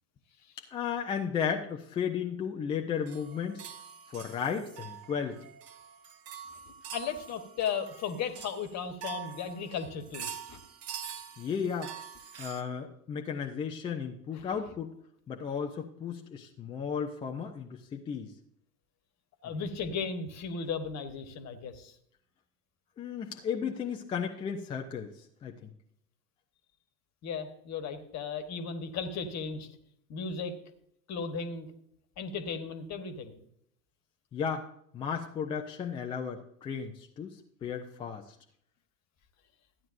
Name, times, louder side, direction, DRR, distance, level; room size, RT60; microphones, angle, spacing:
voice 1, 0.6-3.6 4.1-5.5 11.4-11.9 12.4-14.9 15.3-18.3 19.4-19.5 23.0-25.7 34.3-38.4, left 7 dB, 10° left, 2 dB, 0.4 m, -34 dB
sound 1, 3.1-12.6, right 8 dB, 30° right, 0.9 m, -45 dB
voice 2, 6.9-10.6 14.3-14.4 19.4-21.9 27.2-29.7 30.1-30.5 31.1-31.7 32.2-33.4, left 5 dB, 35° left, 9 dB, 1.3 m, -36 dB
13.5 x 9.6 x 2.6 m, 0.70 s
figure-of-eight pair, 80°, 48 cm